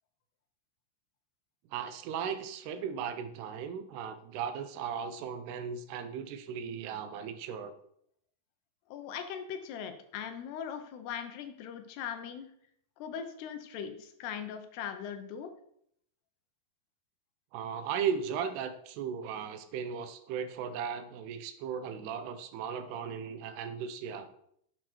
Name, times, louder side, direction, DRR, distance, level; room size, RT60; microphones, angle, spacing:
voice 1, 1.7-7.7 17.5-24.3, right 7 dB, 80° right, 10 dB, 2.8 m, -36 dB
voice 2, 8.9-12.5 13.0-15.5, left 8 dB, 80° left, 8 dB, 3.0 m, -40 dB
10.5 x 8.0 x 4.6 m, 0.70 s
omnidirectional pair, 4.8 m